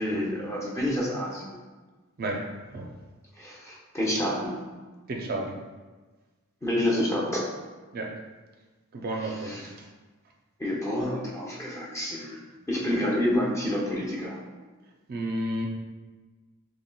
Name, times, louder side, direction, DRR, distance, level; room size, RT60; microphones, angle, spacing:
voice 1, 0.0-1.5 3.4-4.6 6.6-7.5 9.2-9.7 10.6-12.4 12.7-14.4, left 1 dB, 15° left, -4 dB, 0.6 m, -28 dB
voice 2, 5.1-5.5 7.9-8.1 8.9-9.7 15.1-15.7, right 1 dB, 45° right, 0 dB, 0.4 m, -31 dB
4.1 x 3.2 x 2.2 m, 1.3 s
head